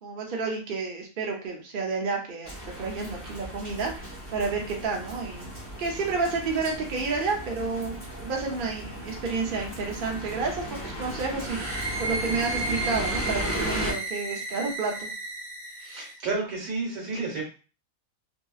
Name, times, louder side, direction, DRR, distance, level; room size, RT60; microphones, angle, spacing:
voice 1, 0.0-2.5 2.8-5.5 5.8-15.1, right 4 dB, 50° right, 0 dB, 0.7 m, -30 dB
sound 1, 2.4-13.9, equal, 15° right, 1.0 m, -36 dB
sound 2, 11.3-16.2, right 2 dB, ahead, 1.3 m, -33 dB
voice 2, 15.8-17.4, right 3 dB, 75° right, -2 dB, 1.5 m, -31 dB
2.8 x 2.7 x 2.3 m, 0.35 s
omnidirectional pair, 1.5 m